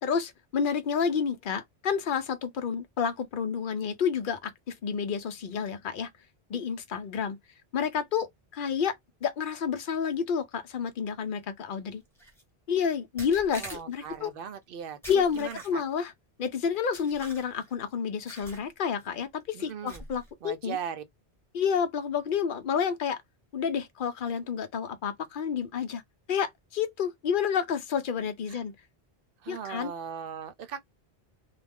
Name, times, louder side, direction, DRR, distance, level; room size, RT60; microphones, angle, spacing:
voice 1, 0.0-6.1 6.5-7.4 7.7-8.9 9.2-12.0 12.7-14.3 15.1-16.1 16.4-20.8 21.5-23.2 23.5-26.0 26.3-28.7 29.5-29.9, left 7 dB, 60° left, 0.7 m, -30 dB
sound 1, 12.2-12.4 13.2-14.2 15.0-16.0 16.9-17.7 18.3-18.7 19.0-19.2 19.9-20.3, equal, 5° left, 0.9 m, -45 dB
voice 2, 13.5-15.8 19.5-20.0 20.4-21.0 28.5-28.6 29.4-30.8, right 8 dB, 65° right, 0.7 m, -39 dB
2.4 x 2.1 x 3.4 m
omnidirectional pair, 1.1 m